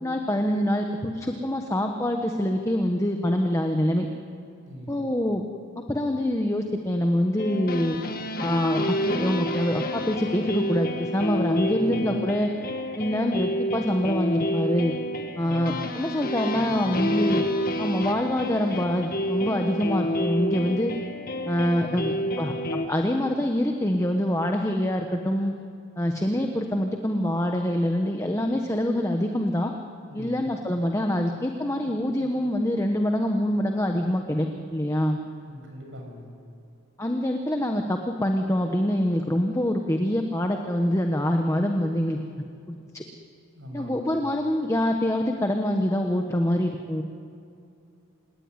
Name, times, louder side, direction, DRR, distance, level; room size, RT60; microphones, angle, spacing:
voice 1, 0.0-4.1 4.9-5.4 5.8-8.0 8.4-12.5 13.0-14.9 15.4-17.5 17.8-20.9 21.5-25.5 26.0-29.7 30.1-35.2 37.0-42.2 42.7-43.0 43.7-47.0, left 1 dB, 15° left, 4 dB, 1.2 m, -25 dB
voice 2, 4.6-5.1 11.7-12.2 15.4-15.9 16.5-17.2 21.8-22.2 30.1-30.5 35.4-36.3 43.5-44.2, equal, 65° right, 1 dB, 7.1 m, -41 dB
sound 1, 7.4-22.9, equal, 45° left, 1.8 m, -29 dB
26.5 x 19.0 x 9.8 m, 2.5 s
head